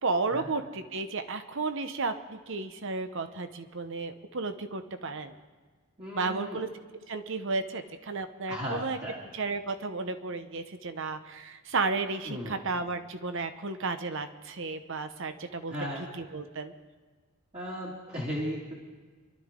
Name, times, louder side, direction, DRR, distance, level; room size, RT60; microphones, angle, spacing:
voice 1, 0.0-5.4 6.1-6.7 7.1-9.0 9.3-15.9 16.2-16.7, right 3 dB, 55° right, 9 dB, 0.9 m, -33 dB
voice 2, 6.0-6.6 8.5-9.2 12.3-12.6 15.7-16.0 17.5-18.7, equal, 30° right, -6 dB, 2.5 m, -36 dB
27.0 x 12.5 x 3.7 m, 1.4 s
head